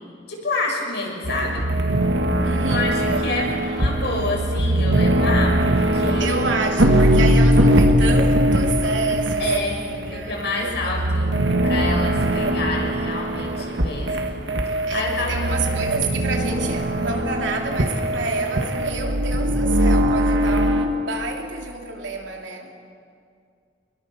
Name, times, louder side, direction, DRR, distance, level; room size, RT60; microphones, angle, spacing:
voice 1, 0.3-1.7 2.7-6.4 9.4-9.8 10.1-11.3 11.6-15.5, left 2 dB, 65° left, 0 dB, 5.9 m, -28 dB
sound 1, 1.2-20.9, right 1 dB, 75° right, 1.9 m, -21 dB
voice 2, 2.4-2.9 6.2-11.2 14.9-22.7, right 3 dB, 90° right, 2 dB, 3.0 m, -29 dB
26.0 x 21.5 x 7.0 m, 2.3 s
head